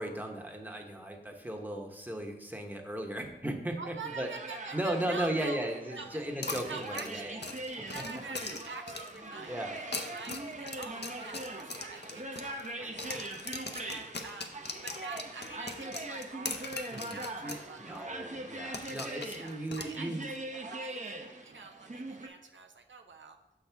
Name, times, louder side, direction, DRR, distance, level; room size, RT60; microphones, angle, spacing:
voice 1, 0.0-4.3 4.7-7.3 7.8-8.0 9.2-9.8 12.8-12.9 16.9-20.3, right 1 dB, 10° right, 2 dB, 0.9 m, -36 dB
voice 2, 3.8-5.7 6.0-6.2 6.7-13.3 13.7-14.5 14.8-18.3 18.8-19.0 19.4-20.2 20.6-23.4, right 5 dB, 80° right, 4 dB, 0.5 m, -46 dB
sound 1, 4.1-22.3, right 1 dB, 40° right, 0.7 m, -42 dB
sound 2, 6.4-9.3 9.8-12.7 13.0-17.7 17.9-18.0 18.7-20.4, left 3 dB, 60° left, 0.6 m, -41 dB
6.3 x 5.9 x 3.4 m, 0.94 s
wide cardioid pair, 45°, 19 cm